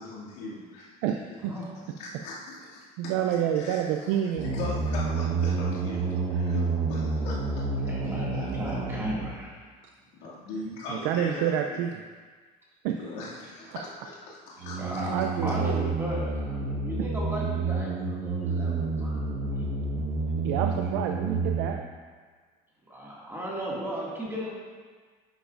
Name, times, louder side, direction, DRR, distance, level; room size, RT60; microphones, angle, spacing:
voice 1, 0.0-1.0 2.0-4.1 4.4-7.6 10.1-11.8 12.9-15.1, left 3 dB, 85° left, -7 dB, 2.4 m, -40 dB
voice 2, 1.0-1.5 3.0-4.5 10.9-12.0 12.8-13.0 13.7-13.8 15.0-15.8 20.4-21.8, right 9 dB, 90° right, 4 dB, 0.5 m, -28 dB
sound 1, 4.4-9.4 14.6-21.7, right 4 dB, 65° right, 1.3 m, -29 dB
voice 3, 7.8-9.6 14.6-19.2 22.9-24.5, equal, 15° right, -6 dB, 2.1 m, -35 dB
9.9 x 7.1 x 2.5 m, 1.5 s
cardioid pair, 115°, 16 cm